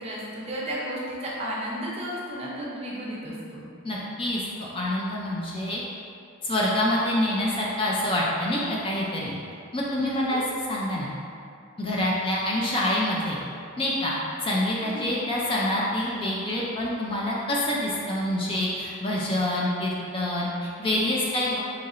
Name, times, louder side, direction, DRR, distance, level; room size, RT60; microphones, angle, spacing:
voice 1, 0.0-3.7 10.0-10.4 14.8-15.1, equal, 30° right, -5 dB, 0.5 m, -33 dB
voice 2, 3.8-4.4 4.7-5.8 6.4-9.3 9.7-10.4 10.7-11.1 11.8-13.4 13.8-14.1 14.4-20.5 20.8-21.6, left 1 dB, 25° left, -4 dB, 0.4 m, -26 dB
2.8 x 2.5 x 4.1 m, 2.5 s
head